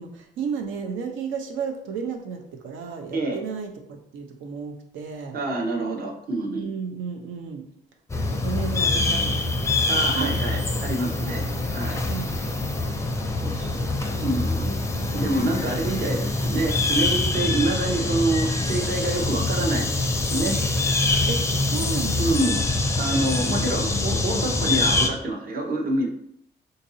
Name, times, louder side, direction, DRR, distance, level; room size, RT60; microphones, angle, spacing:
voice 1, 0.0-5.4 6.5-7.7 8.1-9.8 10.1-10.6 11.1-11.6 12.1-12.4 13.3-14.3 14.6-15.4 21.3-22.6 23.5-24.3, right 6 dB, 80° right, 4 dB, 0.6 m, -34 dB
voice 2, 5.3-6.7 9.9-11.4 11.7-12.0 13.4-13.8 14.2-14.7 15.1-20.6 22.2-22.6 23.0-26.1, right 2 dB, 50° right, 1 dB, 0.8 m, -27 dB
sound 1, 8.1-25.1, left 2 dB, 15° left, 0.5 m, -24 dB
3.9 x 2.6 x 2.6 m, 0.71 s
cardioid pair, 90°, 20 cm